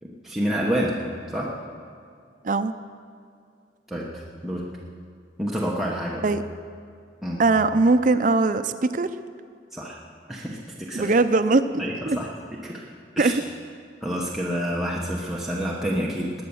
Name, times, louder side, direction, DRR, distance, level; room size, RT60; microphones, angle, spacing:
voice 1, 0.0-1.0 1.3-1.5 3.9-4.7 5.4-6.2 7.2-7.4 9.7-10.0 10.3-11.1 11.8-12.3 12.6-12.8 13.2-13.3 14.0-16.3, equal, ahead, -4 dB, 1.1 m, -28 dB
voice 2, 7.4-9.1 10.9-12.2 13.2-13.4, right 3 dB, 45° right, 11 dB, 0.5 m, -21 dB
19.5 x 9.2 x 7.1 m, 2.3 s
head